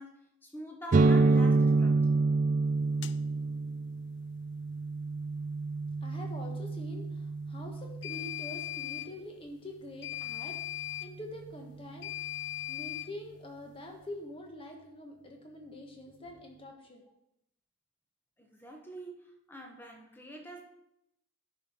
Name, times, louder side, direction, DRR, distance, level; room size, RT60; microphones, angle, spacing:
voice 1, 0.0-2.2 18.4-20.6, right 1 dB, 10° left, 2 dB, 1.1 m, -46 dB
sound 1, 0.9-8.5, right 3 dB, 35° right, 0.3 m, -28 dB
sound 2, 3.0-3.2 8.0-9.1 10.0-11.1 12.0-13.1, left 15 dB, 55° left, 0.3 m, -38 dB
voice 2, 5.8-12.4 12.7-17.0, left 1 dB, 25° left, 2 dB, 1.3 m, -45 dB
10.5 x 5.8 x 4.5 m, 0.81 s
head